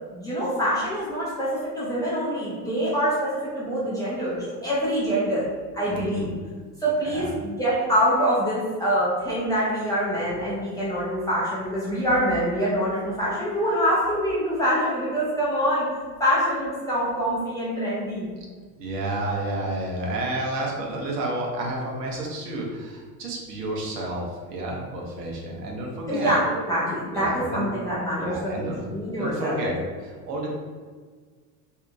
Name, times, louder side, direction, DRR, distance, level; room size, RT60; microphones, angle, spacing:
voice 1, 0.1-5.5 5.7-6.3 6.8-15.9 16.2-18.3 26.1-29.6, equal, 10° left, -9 dB, 0.3 m, -25 dB
voice 2, 5.9-6.3 7.0-7.3 18.7-26.3 27.1-27.6 28.2-28.8 29.2-29.7 30.0-30.5, right 1 dB, 75° right, -2 dB, 0.9 m, -30 dB
2.8 x 2.1 x 2.5 m, 1.5 s
hypercardioid pair, 80°, 49 cm